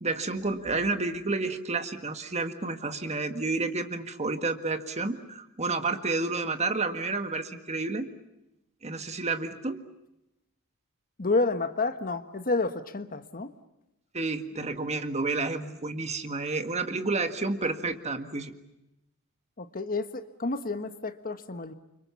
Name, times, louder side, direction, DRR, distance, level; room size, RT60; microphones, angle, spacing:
voice 1, 0.0-8.1 8.8-9.8 14.1-18.5, right 3 dB, 30° right, 8 dB, 1.8 m, -30 dB
voice 2, 11.2-13.5 19.6-21.7, left 3 dB, 40° left, 10 dB, 1.3 m, -30 dB
29.5 x 25.5 x 7.1 m, 0.92 s
head